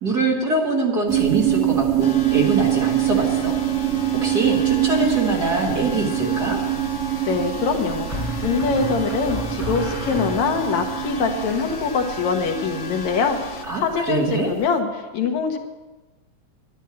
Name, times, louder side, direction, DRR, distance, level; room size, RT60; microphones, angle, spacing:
voice 1, 0.0-6.6 13.7-14.5, right 2 dB, 40° right, -1 dB, 1.9 m, -24 dB
sound 1, 1.1-14.5, right 14 dB, 85° right, 2.0 m, -24 dB
sound 2, 2.0-13.7, left 4 dB, 60° left, 1.4 m, -36 dB
sound 3, 5.8-6.0 8.1-10.8, left 1 dB, 5° left, 5.0 m, -32 dB
voice 2, 7.3-15.6, left 5 dB, 75° left, 4 dB, 2.6 m, -24 dB
11.0 x 11.0 x 7.0 m, 1.2 s
omnidirectional pair, 3.3 m